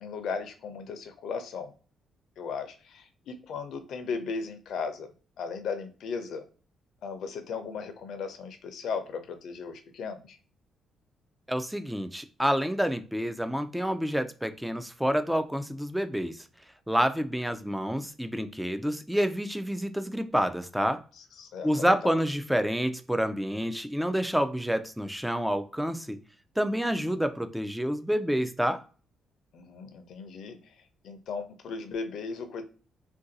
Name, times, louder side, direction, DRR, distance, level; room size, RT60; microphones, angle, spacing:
voice 1, 0.0-1.7 2.4-5.1 5.4-6.4 7.0-10.4 21.4-21.9 29.5-30.6 31.0-32.6, left 5 dB, 70° left, 0.6 m, -36 dB
voice 2, 11.5-16.4 16.9-21.0 21.6-26.2 26.6-28.8, equal, 5° right, 0.4 m, -28 dB
2.6 x 2.2 x 3.9 m
cardioid pair, 90°, 0 cm